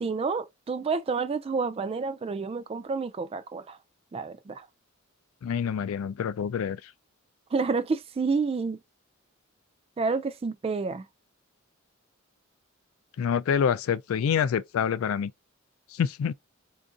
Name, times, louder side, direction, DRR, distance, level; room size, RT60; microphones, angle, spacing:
voice 1, 0.0-3.8 4.1-4.7 7.5-8.8 10.0-11.1, right 4 dB, 30° right, 0.3 m, -29 dB
voice 2, 5.4-6.8 13.2-15.3 15.9-16.3, left 7 dB, 85° left, 0.3 m, -26 dB
4.5 x 2.6 x 2.4 m
head